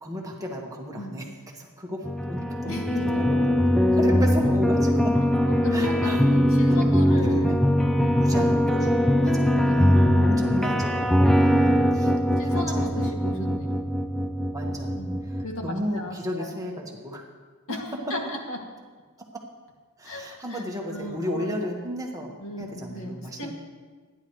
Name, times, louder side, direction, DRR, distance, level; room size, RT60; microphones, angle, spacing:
voice 1, 0.0-3.4 3.9-5.2 5.7-6.2 6.7-6.9 7.2-7.6 8.2-10.0 10.2-13.1 14.5-14.9 15.2-17.2 20.0-23.5, equal, 15° right, 0 dB, 1.5 m, -34 dB
sound 1, 2.0-15.4, equal, ahead, 0.5 m, -21 dB
voice 2, 2.7-3.2 5.4-7.5 8.8-9.2 9.5-10.1 12.4-13.8 15.0-16.6 17.7-18.6 20.0-20.2 20.5-20.6 20.9-21.5 22.4-23.5, left 1 dB, 65° left, 0 dB, 2.2 m, -36 dB
26.5 x 10.5 x 3.2 m, 1.4 s
head